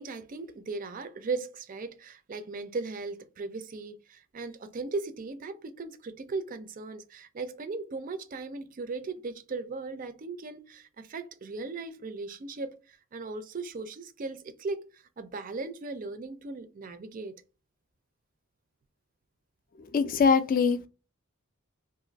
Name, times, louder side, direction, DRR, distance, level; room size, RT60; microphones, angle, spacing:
voice 1, 0.0-17.3, right 3 dB, 40° right, 0.4 m, -37 dB
voice 2, 19.9-20.9, left 5 dB, 40° left, 0.3 m, -23 dB
2.5 x 2.4 x 3.9 m
head